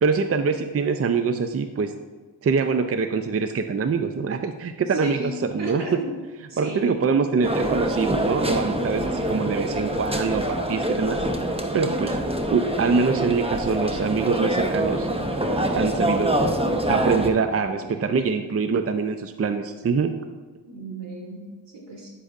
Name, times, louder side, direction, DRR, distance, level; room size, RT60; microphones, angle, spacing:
voice 1, 0.0-1.9 2.4-6.0 6.6-11.2 11.7-12.2 12.5-15.1 15.7-16.4 16.9-20.1, right 5 dB, 35° right, 8 dB, 0.5 m, -24 dB
voice 2, 4.9-6.1 6.5-7.0 17.7-18.0 20.7-22.1, right 1 dB, 75° right, -2 dB, 2.6 m, -35 dB
sound 1, 7.4-17.3, right 1 dB, 15° right, 0.9 m, -25 dB
9.8 x 7.9 x 2.5 m, 1.4 s
cardioid pair, 60°, 43 cm